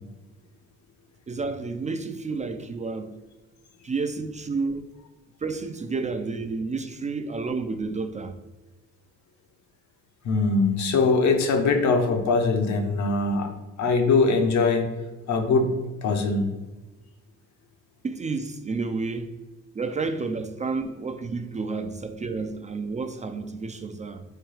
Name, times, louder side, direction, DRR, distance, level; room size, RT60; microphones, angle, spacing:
voice 1, 1.3-3.2 3.8-4.9 5.4-8.3 18.0-19.3 19.7-24.2, right 4 dB, 25° right, 0.3 m, -30 dB
voice 2, 10.2-13.5 13.8-14.9 15.3-15.7 16.0-16.4, left 3 dB, 70° left, 0.8 m, -22 dB
4.4 x 2.3 x 4.7 m
cardioid pair, 90°, 30 cm